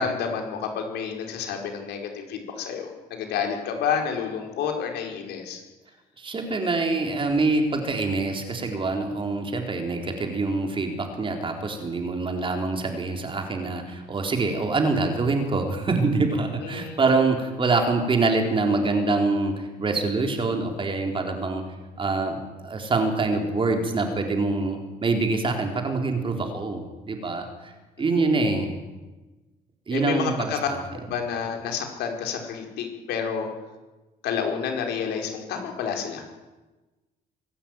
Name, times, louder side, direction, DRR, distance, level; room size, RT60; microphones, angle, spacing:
voice 1, 0.0-5.6 16.6-17.0 28.1-28.5 29.9-30.7 31.0-33.5 34.2-36.2, left 7 dB, 80° left, 3 dB, 4.8 m, -29 dB
voice 2, 6.2-21.6 22.0-27.7 28.0-28.7 29.9-30.8, right 3 dB, 30° right, 4 dB, 4.1 m, -25 dB
24.5 x 12.5 x 9.4 m, 1.2 s
cardioid pair, 110°, 17 cm